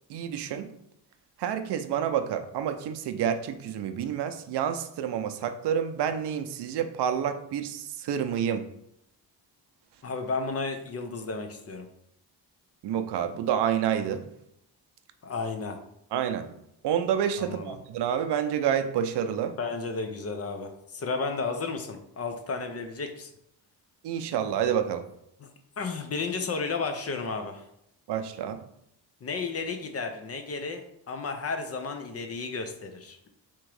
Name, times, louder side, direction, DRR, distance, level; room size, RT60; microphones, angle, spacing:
voice 1, 0.1-0.7 1.4-8.7 12.8-14.2 16.1-16.5 16.8-19.6 24.0-25.1 28.1-28.6, right 9 dB, 75° right, 9 dB, 0.6 m, -28 dB
voice 2, 10.0-11.9 15.2-15.8 17.4-17.8 19.6-23.3 25.4-25.5 25.8-27.6 29.2-33.2, left 4 dB, 35° left, 6 dB, 0.6 m, -33 dB
3.6 x 3.0 x 4.7 m, 0.76 s
cardioid pair, 135°, 41 cm